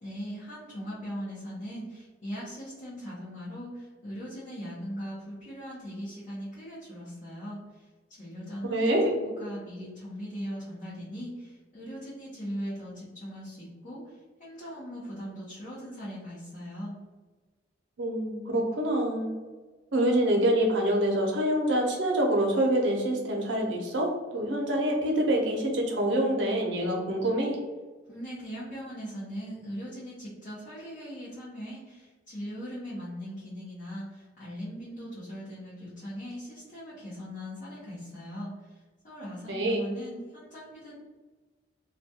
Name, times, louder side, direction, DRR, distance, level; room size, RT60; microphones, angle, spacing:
voice 1, 0.0-17.0 28.1-40.9, equal, 45° left, -10 dB, 0.8 m, -40 dB
voice 2, 8.6-9.1 18.0-19.3 19.9-27.6 39.5-39.8, right 1 dB, 75° right, 0 dB, 0.6 m, -26 dB
2.3 x 2.2 x 2.7 m, 1.3 s
head